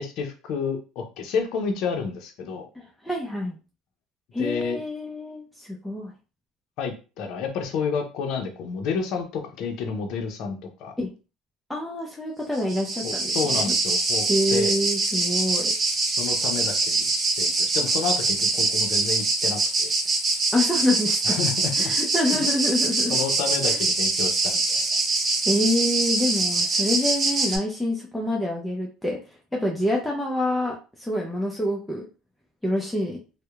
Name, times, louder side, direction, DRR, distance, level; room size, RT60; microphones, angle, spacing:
voice 1, 0.0-2.7 4.4-4.8 6.8-10.9 13.0-14.7 16.2-17.1 17.4-19.9 21.2-21.9 22.3-22.5 23.1-25.0, left 5 dB, 65° left, 4 dB, 0.6 m, -30 dB
voice 2, 2.7-3.6 4.3-6.1 11.0-11.1 11.7-13.7 14.3-15.7 20.5-21.4 21.8-23.2 23.7-23.8 25.5-29.2 29.5-32.1 32.6-33.2, left 1 dB, 5° left, -2 dB, 0.6 m, -26 dB
sound 1, 12.5-27.6, right 3 dB, 30° right, 0.6 m, -24 dB
2.7 x 2.1 x 2.3 m, 0.33 s
supercardioid pair, 90°, 0 cm